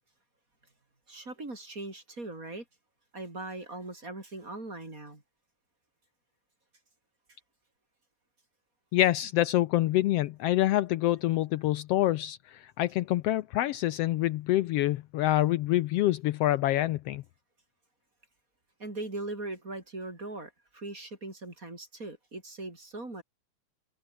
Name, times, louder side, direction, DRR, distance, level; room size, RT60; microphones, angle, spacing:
voice 1, 1.1-2.6 3.1-5.2 18.8-23.2, right 2 dB, 25° right, 5.2 m, -40 dB
voice 2, 8.9-17.2, left 15 dB, 90° left, 1.3 m, -26 dB
omnidirectional pair, 3.5 m